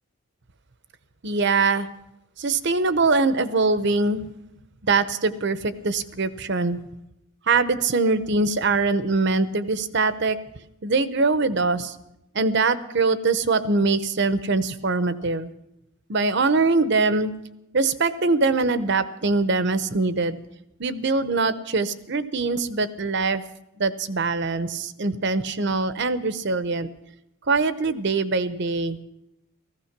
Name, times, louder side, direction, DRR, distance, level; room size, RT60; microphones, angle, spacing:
voice 1, 1.2-1.9 2.4-4.3 4.8-6.8 7.5-10.4 10.8-12.0 12.3-15.5 16.1-17.3 17.7-20.4 20.8-23.4 23.8-26.9 27.5-29.0, right 3 dB, 50° right, 13 dB, 0.8 m, -23 dB
16.0 x 15.0 x 5.9 m, 0.87 s
head